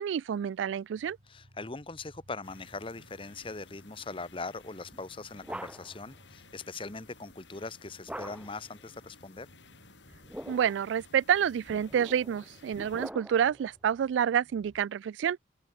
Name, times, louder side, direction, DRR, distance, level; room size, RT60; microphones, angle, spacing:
voice 1, 0.0-1.2 10.5-15.4, right 8 dB, 90° right, 0.3 m, -28 dB
sound 1, 0.9-7.4 7.7-7.8 8.1-12.7 13.2-14.8, equal, 55° right, 5.5 m, -63 dB
voice 2, 1.3-9.5, left 3 dB, 30° left, 1.1 m, -41 dB
sound 2, 2.4-13.1, left 3 dB, 85° left, 6.9 m, -56 dB
sound 3, 4.9-6.1 8.1-8.7 10.0-10.9 11.7-13.6, right 1 dB, 5° right, 0.8 m, -43 dB
head